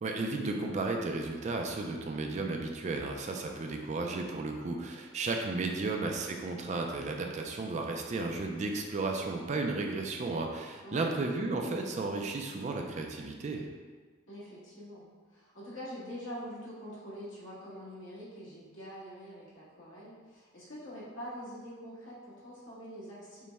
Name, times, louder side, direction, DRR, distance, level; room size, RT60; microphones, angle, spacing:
voice 1, 0.0-13.6, right 3 dB, 35° right, 2 dB, 0.3 m, -34 dB
voice 2, 14.3-15.0 15.3-23.5, equal, 75° left, -8 dB, 1.3 m, -45 dB
5.2 x 2.1 x 3.4 m, 1.5 s
head